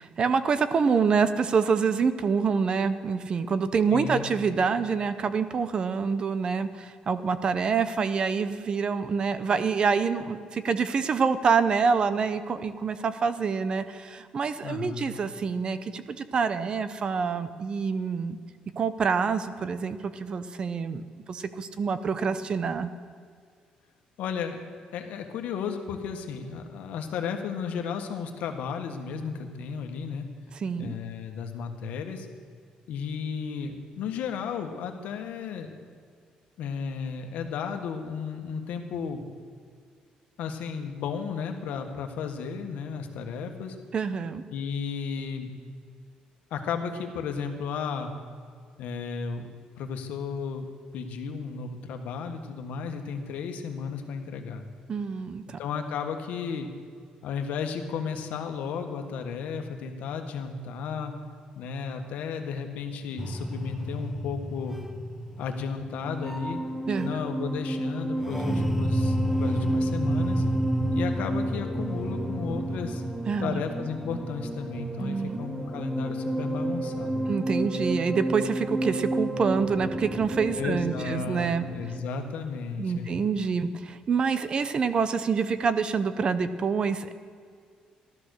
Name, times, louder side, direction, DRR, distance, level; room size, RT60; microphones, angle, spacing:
voice 1, 0.0-18.4 18.8-21.0 21.3-22.9 30.5-30.9 43.9-44.4 54.9-55.6 66.9-67.2 73.3-73.7 75.0-75.4 77.3-81.7 82.8-87.1, right 5 dB, 35° right, 12 dB, 0.7 m, -26 dB
voice 2, 3.9-4.2 4.5-4.6 14.6-15.1 24.2-24.6 24.9-30.2 30.8-32.3 32.9-35.8 36.6-39.2 40.4-43.7 44.5-45.5 46.5-48.1 48.8-49.5 49.8-50.7 50.9-54.6 55.6-56.7 57.2-61.1 61.6-64.8 65.4-66.6 67.0-70.4 70.9-73.0 73.4-77.3 80.6-83.1, left 6 dB, 80° left, 5 dB, 1.6 m, -34 dB
sound 1, 63.2-82.0, right 1 dB, 5° right, 0.8 m, -30 dB
14.5 x 12.0 x 6.6 m, 2.1 s
cardioid pair, 140°, 3 cm